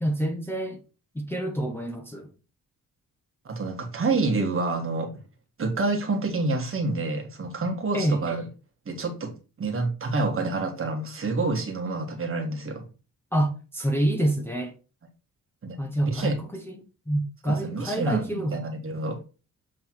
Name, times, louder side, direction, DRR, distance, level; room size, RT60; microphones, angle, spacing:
voice 1, 0.0-0.8 1.1-2.3 7.9-8.2 13.3-14.7 15.8-18.6, right 1 dB, 5° left, 0.9 m, -27 dB
voice 2, 3.4-5.1 5.6-8.5 8.8-9.3 9.6-12.8 15.6-15.8 16.0-16.4 17.4-19.2, right 3 dB, 40° right, 1.5 m, -28 dB
7.7 x 3.3 x 4.5 m
wide cardioid pair, 135°, 34 cm